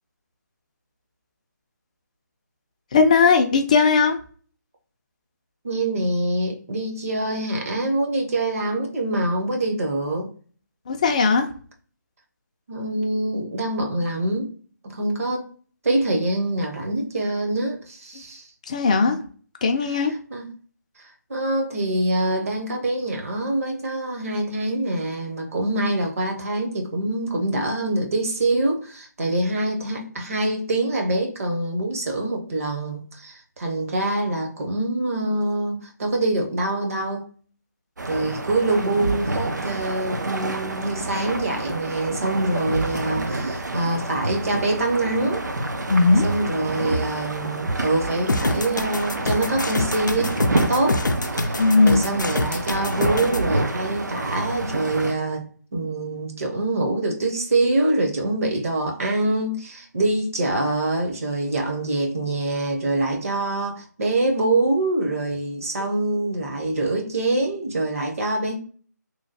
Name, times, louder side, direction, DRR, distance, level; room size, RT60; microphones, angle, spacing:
voice 1, 2.9-4.2 10.9-11.5 18.7-19.2 19.6-20.1 45.9-46.3 51.6-52.0, left 4 dB, 20° left, 0.3 m, -18 dB
voice 2, 5.6-10.3 12.7-14.5 14.8-15.5 15.8-18.4 20.3-20.4 21.3-37.3 38.0-45.4 46.2-51.0 51.3-68.6, right 2 dB, 50° right, 0.9 m, -25 dB
sound 1, 38.0-55.1, right 2 dB, 70° right, 0.5 m, -28 dB
sound 2, 48.3-53.4, left 2 dB, 90° left, 0.4 m, -25 dB
3.0 x 2.2 x 2.6 m
figure-of-eight pair, 155°, 10 cm